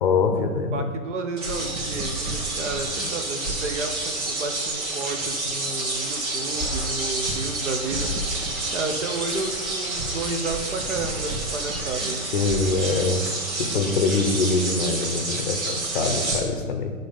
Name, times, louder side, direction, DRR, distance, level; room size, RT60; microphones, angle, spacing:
voice 1, 0.0-0.8 12.3-16.9, left 4 dB, 40° left, 5 dB, 0.6 m, -24 dB
voice 2, 0.7-8.1 8.7-12.2, right 3 dB, 55° right, 5 dB, 0.9 m, -32 dB
sound 1, 1.4-16.4, right 2 dB, 75° right, 2.0 m, -29 dB
sound 2, 6.6-8.9 9.1-9.6 10.6-10.9 12.3-12.6, left 2 dB, ahead, 1.1 m, -36 dB
7.4 x 3.9 x 5.3 m, 1.5 s
hypercardioid pair, 160°, 43 cm